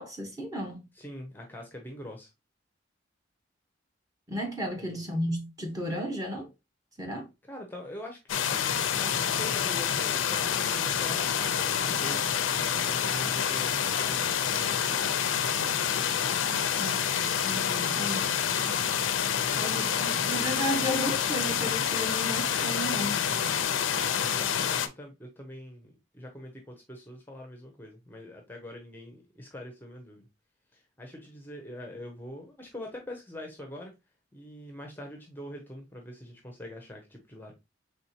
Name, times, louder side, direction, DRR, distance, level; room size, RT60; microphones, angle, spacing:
voice 1, 0.0-0.8 4.3-6.5 7.0-7.3 16.8-18.3 19.5-23.3, equal, 20° right, 1.0 m, -34 dB
voice 2, 0.9-2.3 4.8-5.0 7.4-8.2 8.5-15.1 19.4-20.4 24.1-30.3 30.7-33.9 34.3-37.5, left 1 dB, 10° left, 0.6 m, -44 dB
sound 1, 8.3-24.9, left 8 dB, 85° left, 0.5 m, -28 dB
4.3 x 3.4 x 2.8 m
head